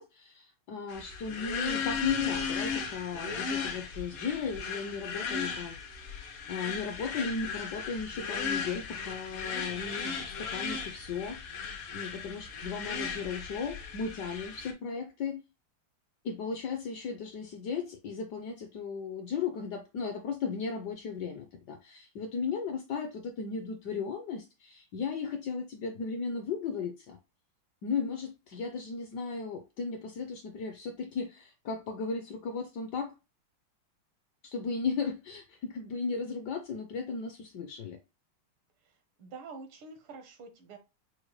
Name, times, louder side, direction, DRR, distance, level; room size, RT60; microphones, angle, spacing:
voice 1, 0.0-5.8 6.5-11.6 11.9-15.4 16.2-27.2 27.8-33.1 34.4-38.0, left 5 dB, 70° left, 1.0 m, -36 dB
sound 1, 0.9-14.7, left 6 dB, 85° left, 1.8 m, -36 dB
voice 2, 38.8-40.8, right 4 dB, 80° right, 1.8 m, -47 dB
6.3 x 2.1 x 3.1 m
omnidirectional pair, 2.3 m